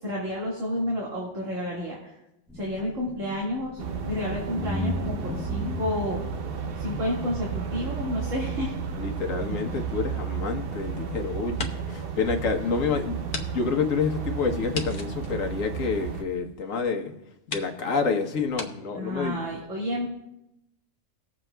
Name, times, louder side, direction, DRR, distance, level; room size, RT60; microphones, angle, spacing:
voice 1, 0.0-2.2 2.5-3.8 4.1-6.2 6.7-8.8 18.9-20.1, left 1 dB, 75° right, -4 dB, 2.3 m, -30 dB
sound 1, 2.5-4.2 4.6-9.8, equal, ahead, 0.7 m, -37 dB
sound 2, 3.8-16.2, right 7 dB, 55° right, 0.9 m, -33 dB
voice 2, 9.0-13.2 13.5-17.1 17.5-19.4, left 5 dB, 85° left, 4 dB, 1.4 m, -28 dB
sound 3, 10.1-11.0 11.4-12.0 12.4-12.5 13.3-13.5 13.7-13.8 14.7-16.3 17.0-17.1 17.5-17.7 18.5-18.7, left 4 dB, 45° left, 0.9 m, -37 dB
19.5 x 7.3 x 2.2 m, 0.87 s
omnidirectional pair, 1.3 m